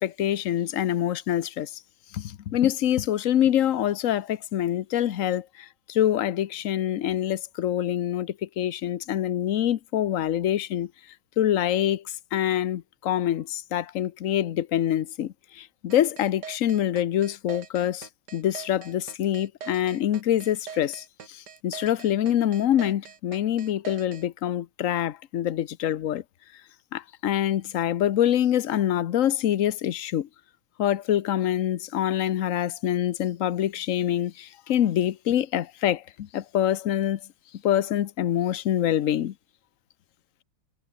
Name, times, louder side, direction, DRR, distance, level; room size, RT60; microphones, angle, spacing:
voice 1, 0.0-1.8 2.1-10.9 11.4-26.2 26.9-30.3 30.8-37.2 37.6-39.3, left 11 dB, 65° left, 0.8 m, -25 dB
sound 1, 15.9-24.3, right 7 dB, 55° right, 2.3 m, -42 dB
omnidirectional pair, 2.3 m